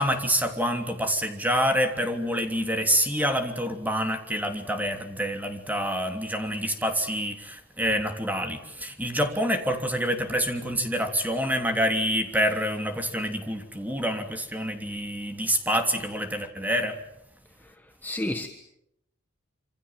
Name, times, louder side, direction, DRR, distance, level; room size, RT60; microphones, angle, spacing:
voice 1, 0.0-16.9, equal, 10° right, 5 dB, 3.1 m, -27 dB
voice 2, 17.6-18.5, left 1 dB, 10° left, 5 dB, 1.4 m, -32 dB
27.5 x 26.5 x 7.5 m, 0.79 s
head